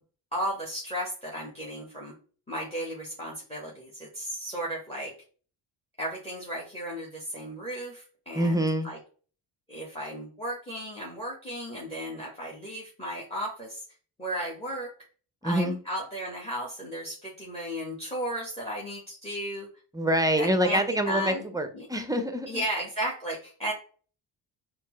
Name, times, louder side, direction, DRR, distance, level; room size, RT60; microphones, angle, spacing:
voice 1, 0.3-2.1 2.5-5.1 6.0-9.0 9.7-13.8 14.2-14.9 15.4-19.7 20.4-21.5 21.7-21.9 22.5-23.7, equal, 15° left, -3 dB, 1.1 m, -34 dB
voice 2, 8.3-8.9 15.4-15.8 19.9-22.6, right 1 dB, 10° right, 7 dB, 0.6 m, -26 dB
4.3 x 2.0 x 3.0 m, 0.41 s
cardioid pair, 60°, 45 cm